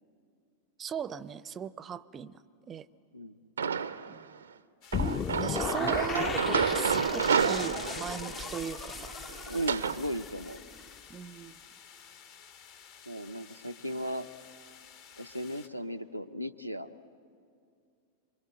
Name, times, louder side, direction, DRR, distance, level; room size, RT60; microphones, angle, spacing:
voice 1, 0.8-2.4 2.7-2.9 4.1-4.4 5.4-9.1 11.1-11.6, right 8 dB, 25° right, 19 dB, 0.5 m, -38 dB
voice 2, 3.1-3.5 9.5-10.6 13.1-14.3 15.2-16.9, equal, 90° left, 13 dB, 0.7 m, -36 dB
sound 1, 3.6-4.2 4.9-10.0, right 6 dB, 70° right, 0.5 m, -30 dB
sound 2, 4.8-15.7, left 7 dB, 50° left, 1.3 m, -54 dB
sound 3, 4.9-11.0, left 6 dB, 25° left, 0.6 m, -36 dB
27.0 x 23.5 x 7.7 m, 2.4 s
figure-of-eight pair, 90°, 0 cm